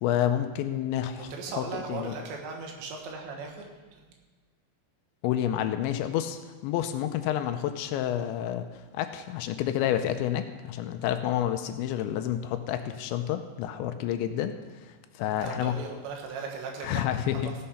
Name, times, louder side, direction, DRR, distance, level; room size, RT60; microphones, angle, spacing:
voice 1, 0.0-2.2 5.2-15.8 16.8-17.4, left 11 dB, 80° left, 8 dB, 2.8 m, -29 dB
voice 2, 1.3-4.0 15.2-17.0 17.4-17.6, right 4 dB, 75° right, 2 dB, 3.6 m, -38 dB
16.0 x 6.5 x 5.7 m, 1.3 s
omnidirectional pair, 5.4 m